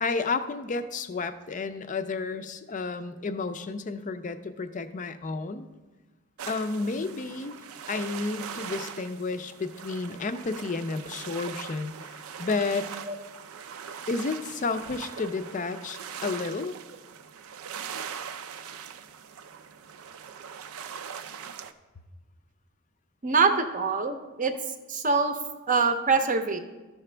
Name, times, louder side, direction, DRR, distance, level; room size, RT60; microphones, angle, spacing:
voice 1, 0.0-5.7 6.5-7.5 7.9-12.9 14.1-16.7, left 3 dB, 35° left, 10 dB, 0.4 m, -31 dB
sound 1, 6.4-21.7, right 7 dB, 85° right, 0.5 m, -41 dB
voice 2, 23.2-24.5 24.9-25.4 25.7-26.6, right 4 dB, 40° right, 7 dB, 0.6 m, -24 dB
13.0 x 5.9 x 3.3 m, 1.2 s
head